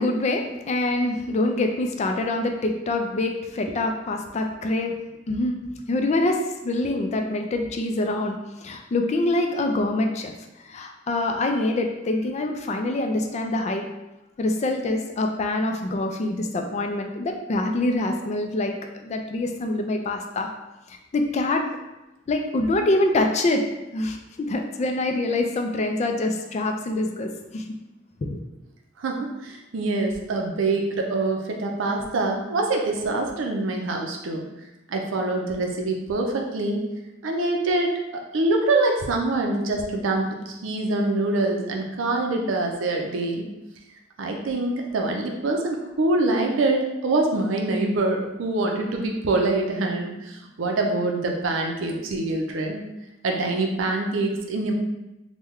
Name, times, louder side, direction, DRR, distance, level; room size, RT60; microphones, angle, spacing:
voice 1, 0.0-4.9 5.3-5.6 5.9-10.3 10.7-13.8 14.4-18.7 19.0-20.5 20.9-21.6 22.3-23.6 23.9-27.6 28.3-28.4, left 2 dB, 35° left, 3 dB, 0.4 m, -25 dB
voice 2, 29.0-34.4 34.9-36.8 37.2-37.9 38.3-43.5 44.2-52.8 53.2-54.7, right 2 dB, 85° right, 2 dB, 0.5 m, -25 dB
3.1 x 2.2 x 3.5 m, 0.98 s
head